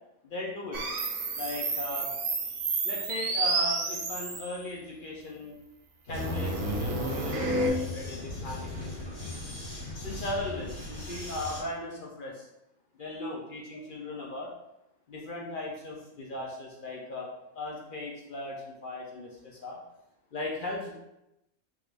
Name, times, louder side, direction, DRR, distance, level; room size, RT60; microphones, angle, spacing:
voice 1, 0.2-0.8 1.3-2.1 2.5-5.6 6.0-9.5 10.0-12.5 12.9-14.5 15.1-17.3 17.5-19.8 20.3-20.9, left 2 dB, 55° left, -2 dB, 0.5 m, -38 dB
sound 1, 0.7-4.6 6.1-7.7, right 3 dB, 70° right, 1.0 m, -30 dB
Vehicle, 6.1-11.6, left 2 dB, 90° left, 1.8 m, -38 dB
3.7 x 3.0 x 3.3 m, 0.87 s
omnidirectional pair, 1.5 m